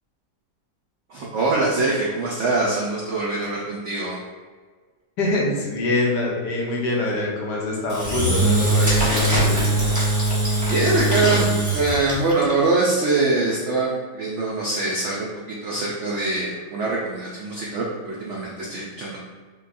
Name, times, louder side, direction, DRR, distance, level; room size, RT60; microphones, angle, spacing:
voice 1, 1.1-4.2 10.6-11.5 11.7-19.2, right 3 dB, 85° right, -4 dB, 0.6 m, -23 dB
voice 2, 5.2-9.7, left 2 dB, 75° left, -3 dB, 1.4 m, -24 dB
Engine / Drill, 7.9-12.4, right 2 dB, 20° right, 0.5 m, -21 dB
5.3 x 2.2 x 2.6 m, 1.5 s
omnidirectional pair, 1.9 m